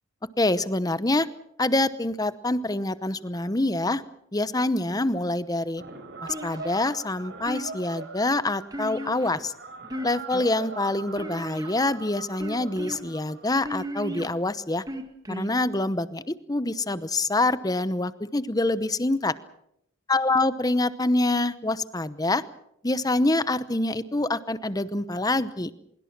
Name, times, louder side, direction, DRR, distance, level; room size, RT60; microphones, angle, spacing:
voice 1, 0.4-1.3 1.6-4.0 4.3-5.8 6.2-9.5 10.0-14.8 15.3-19.3 20.1-22.4 22.8-25.7, left 2 dB, 20° left, 14 dB, 0.9 m, -26 dB
sound 1, 5.8-14.3, right 3 dB, 55° right, 5.3 m, -42 dB
sound 2, 6.3-6.9 7.5-8.0 8.7-9.4 9.8-10.5 11.2-11.9 12.4-13.0 13.6-14.3 14.9-15.5, equal, 20° right, 2.1 m, -35 dB
24.5 x 22.5 x 6.0 m, 0.77 s
head